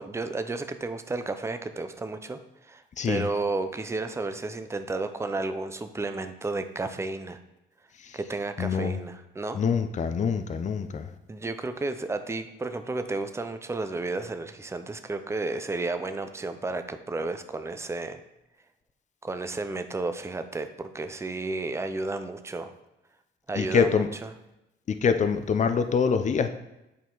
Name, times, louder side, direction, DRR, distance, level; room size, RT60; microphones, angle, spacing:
voice 1, 0.0-7.4 8.1-9.6 11.3-18.2 19.2-22.7 23.5-24.0, right 3 dB, 15° right, 9 dB, 0.6 m, -32 dB
voice 2, 8.6-9.0 9.5-11.1 23.5-24.1 24.9-26.5, left 6 dB, 35° left, 9 dB, 0.6 m, -25 dB
8.3 x 4.5 x 3.9 m, 0.91 s
cardioid pair, 90°, 20 cm